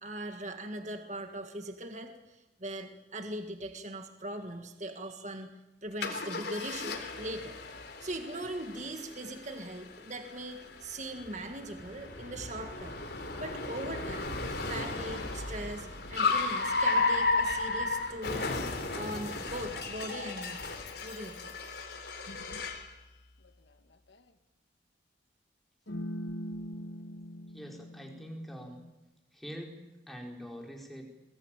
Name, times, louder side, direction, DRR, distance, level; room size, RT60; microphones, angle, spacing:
voice 1, 0.0-5.5 5.8-7.6 8.0-13.0 13.4-14.3 14.7-18.5 18.9-20.7 21.0-21.6, right 1 dB, 40° right, 5 dB, 1.9 m, -40 dB
Car, 6.0-22.9, left 3 dB, 60° left, 3.9 m, -34 dB
sound 1, 16.0-18.4 21.4-21.5 22.3-22.8 23.4-24.3 25.9-28.9, equal, 75° left, 1.8 m, -44 dB
voice 2, 27.5-28.8 29.3-29.8 30.1-31.1, equal, ahead, 0 dB, 4.5 m, -44 dB
28.0 x 21.5 x 9.0 m, 1.1 s
head